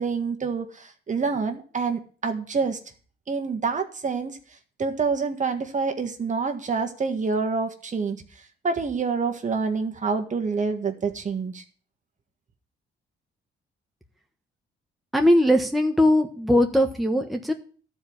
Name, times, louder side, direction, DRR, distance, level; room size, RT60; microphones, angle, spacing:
voice 1, 0.0-2.8 3.3-4.4 4.8-11.6, right 4 dB, 40° right, 5 dB, 1.6 m, -27 dB
voice 2, 15.1-17.5, left 1 dB, ahead, 3 dB, 1.3 m, -20 dB
12.5 x 4.8 x 8.6 m, 0.42 s
cardioid pair, 90°, 20 cm